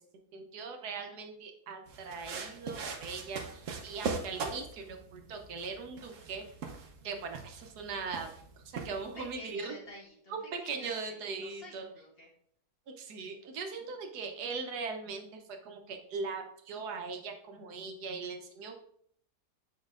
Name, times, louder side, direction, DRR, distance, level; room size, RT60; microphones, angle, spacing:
voice 1, 0.3-6.5 7.0-8.3 8.8-9.7 10.3-10.4 10.6-11.8 13.0-15.3 15.6-18.8, right 4 dB, 80° right, 4 dB, 1.4 m, -40 dB
sound 1, 1.9-9.4, right 4 dB, 60° right, 1.1 m, -41 dB
voice 2, 9.0-12.3, left 1 dB, 40° left, -2 dB, 1.3 m, -50 dB
7.4 x 5.2 x 2.5 m, 0.66 s
omnidirectional pair, 1.7 m